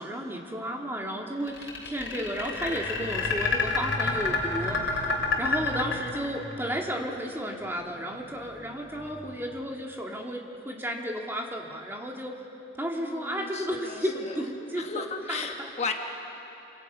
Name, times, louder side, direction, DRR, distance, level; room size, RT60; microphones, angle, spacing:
voice 1, 0.0-12.4 12.8-15.7, equal, 10° right, 0 dB, 1.9 m, -33 dB
sound 1, 1.5-6.5, left 4 dB, 80° left, 3.2 m, -28 dB
sound 2, 2.5-9.6, left 1 dB, 65° right, 5.2 m, -42 dB
voice 2, 13.0-14.5 14.8-15.9, left 4 dB, 35° left, 3 dB, 1.2 m, -35 dB
29.0 x 25.5 x 5.6 m, 3.0 s
head